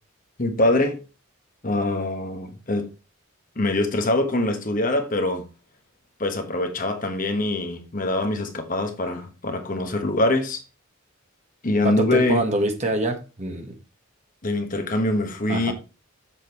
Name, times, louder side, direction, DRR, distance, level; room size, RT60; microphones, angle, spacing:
voice 1, 0.4-1.0 1.6-2.9 3.6-5.4 6.2-10.6 11.6-12.4 14.4-15.7, left 2 dB, 40° left, 1.2 m, -24 dB
voice 2, 11.8-13.7 15.5-15.7, right 1 dB, 30° right, 1.7 m, -25 dB
7.4 x 6.3 x 4.6 m
head